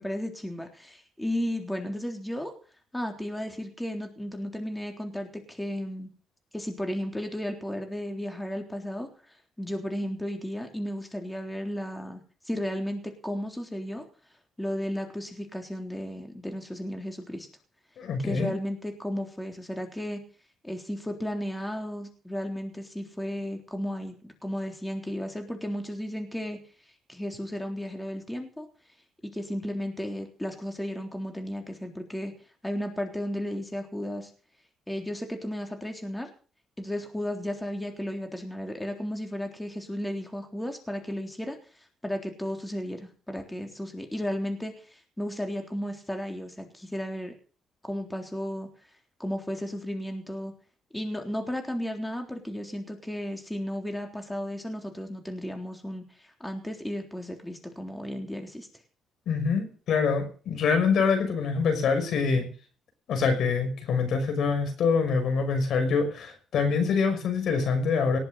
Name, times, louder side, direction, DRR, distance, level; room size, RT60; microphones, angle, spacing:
voice 1, 0.0-2.5 2.9-6.1 6.5-9.1 9.6-14.0 14.6-17.5 18.2-20.2 20.6-26.6 27.1-28.7 29.2-32.3 32.6-34.3 34.9-36.3 36.8-41.6 42.0-47.3 47.8-48.7 49.2-50.5 50.9-58.7, equal, 5° left, 4 dB, 3.6 m, -34 dB
voice 2, 18.0-18.5 59.3-62.5 63.1-68.2, left 5 dB, 70° left, 6 dB, 5.5 m, -25 dB
19.0 x 7.6 x 7.8 m, 0.39 s
cardioid pair, 90°, 0 cm